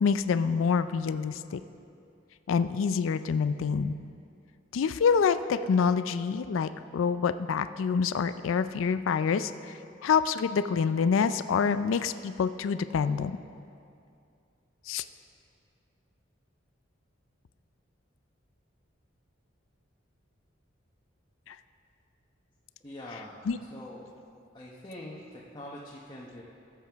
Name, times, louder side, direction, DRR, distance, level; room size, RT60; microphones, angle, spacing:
voice 1, 0.0-1.6 2.5-4.0 4.7-9.7 10.0-13.4 14.9-15.0 21.5-21.6 23.5-23.6, left 6 dB, 90° left, 12 dB, 0.4 m, -26 dB
voice 2, 22.8-24.1 24.5-26.4, left 1 dB, 25° left, -5 dB, 0.9 m, -44 dB
16.5 x 7.6 x 3.5 m, 2.5 s
head